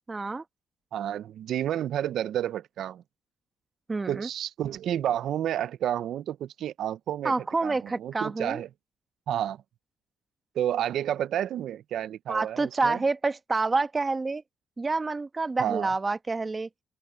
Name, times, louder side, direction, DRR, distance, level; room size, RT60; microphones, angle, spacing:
voice 1, 0.1-0.4 3.9-4.3 7.2-8.6 12.3-14.4 14.8-16.7, right 3 dB, 25° right, 1.2 m, -28 dB
voice 2, 0.9-3.0 4.1-7.4 7.6-8.7 9.3-9.6 10.5-13.0 15.6-15.9, right 11 dB, 70° right, 0.6 m, -30 dB
open air
cardioid pair, 105°, 0 cm